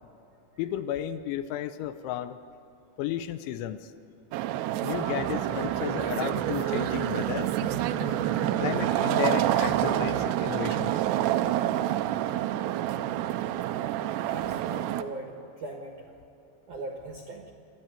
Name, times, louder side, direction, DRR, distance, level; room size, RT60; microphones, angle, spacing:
voice 1, 0.6-2.4 3.0-3.9 4.8-7.5 8.6-11.0, left 11 dB, 80° left, 11 dB, 2.9 m, -33 dB
sound 1, 4.3-15.0, right 13 dB, 85° right, 2.4 m, -28 dB
sound 2, 4.9-10.3, equal, 65° left, 4.6 m, -41 dB
voice 2, 14.2-16.0 16.7-17.5, right 2 dB, 65° right, 1 dB, 1.9 m, -39 dB
27.5 x 12.5 x 8.9 m, 2.7 s
omnidirectional pair, 5.5 m